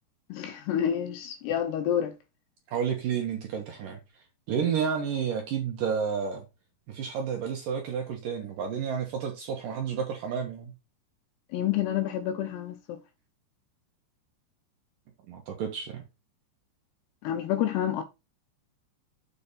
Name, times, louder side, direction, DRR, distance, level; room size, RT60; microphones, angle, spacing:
voice 1, 0.3-2.1 11.5-13.0 17.2-18.0, left 10 dB, 80° left, 2.5 m, -28 dB
voice 2, 2.7-4.0 4.5-6.4 6.9-10.7 15.3-16.0, right 7 dB, 70° right, 2.2 m, -31 dB
7.7 x 5.2 x 4.2 m
omnidirectional pair, 5.3 m